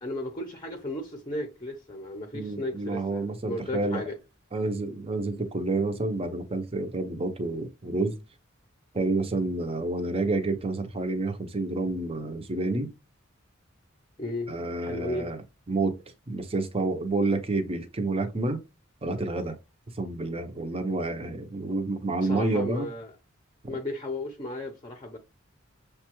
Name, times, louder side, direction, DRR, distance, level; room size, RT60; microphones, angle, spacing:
voice 1, 0.0-4.2 14.2-14.5 14.8-15.3 22.2-23.1 23.7-25.2, left 1 dB, 25° left, 0.6 m, -34 dB
voice 2, 2.3-4.0 4.5-8.1 8.9-12.9 14.5-15.4 15.7-16.0 16.3-18.6 19.0-19.6 20.0-22.9, right 2 dB, 30° right, 0.6 m, -29 dB
6.5 x 2.2 x 3.0 m
head